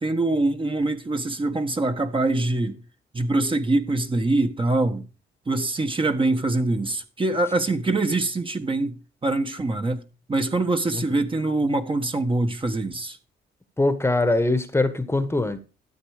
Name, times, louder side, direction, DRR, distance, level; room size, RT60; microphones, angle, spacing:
voice 1, 0.0-2.8 3.1-5.0 5.5-8.9 9.2-10.0 10.3-13.2, right 2 dB, 25° right, 1.5 m, -24 dB
voice 2, 13.8-15.6, left 2 dB, 10° left, 1.3 m, -22 dB
13.0 x 8.3 x 5.0 m
cardioid pair, 90°, 20 cm